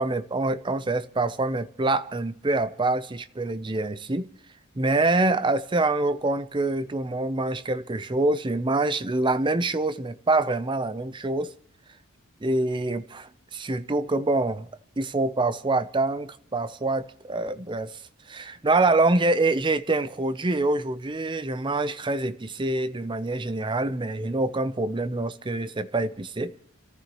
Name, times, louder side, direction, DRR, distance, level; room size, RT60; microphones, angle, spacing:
voice 1, 0.0-4.3 4.8-11.5 12.4-14.7 15.0-18.0 18.3-26.6, right 2 dB, 20° right, 0.6 m, -25 dB
29.5 x 14.0 x 3.0 m
head